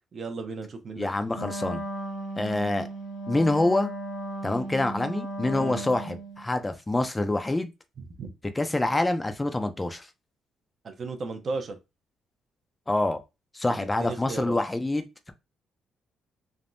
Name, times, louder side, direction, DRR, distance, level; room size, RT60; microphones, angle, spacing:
voice 1, 0.1-1.1 5.5-5.8 8.0-8.3 10.8-11.8 13.7-14.6, right 3 dB, 45° right, 0.7 m, -35 dB
voice 2, 1.0-1.8 2.4-2.9 3.3-3.9 4.4-7.7 8.6-10.1 12.9-13.2 13.5-15.1, left 2 dB, 15° left, 0.5 m, -26 dB
Wind instrument woodwind instrument, 1.3-6.5, right 1 dB, 85° left, 1.0 m, -36 dB
3.4 x 2.1 x 2.6 m
cardioid pair, 90°, 0 cm